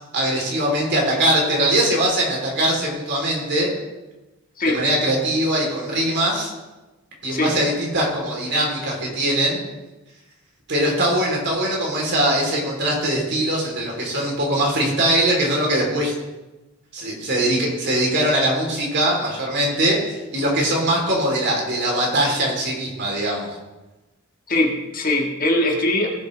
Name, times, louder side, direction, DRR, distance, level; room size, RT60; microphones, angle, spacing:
voice 1, 0.1-3.7 4.6-6.5 7.2-9.6 10.7-16.1 16.9-23.5, right 1 dB, 55° right, -2 dB, 3.5 m, -21 dB
voice 2, 24.5-26.1, left 1 dB, 40° left, 1 dB, 1.7 m, -21 dB
18.0 x 7.9 x 3.4 m, 1.1 s
head